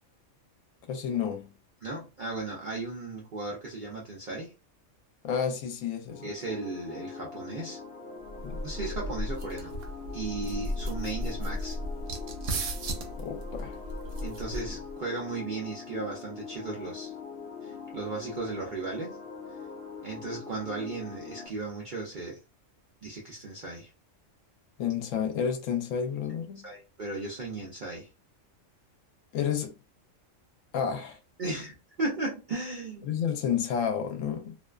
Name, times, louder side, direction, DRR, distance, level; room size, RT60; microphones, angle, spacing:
voice 1, 0.9-1.5 5.2-6.2 8.4-8.6 13.2-13.8 24.8-26.7 29.3-29.7 30.7-31.2 33.0-34.6, left 8 dB, 85° left, 1.0 m, -30 dB
voice 2, 1.8-4.5 6.2-7.8 8.6-9.7 10.1-11.8 14.2-17.1 17.6-19.2 20.0-22.4 23.0-23.9 26.6-28.1 31.4-33.1, right 3 dB, 50° right, 0.6 m, -36 dB
sound 1, 6.1-21.5, left 5 dB, 60° left, 0.7 m, -43 dB
sound 2, 8.3-14.9, equal, 75° right, 0.9 m, -35 dB
2.5 x 2.2 x 2.3 m
omnidirectional pair, 1.3 m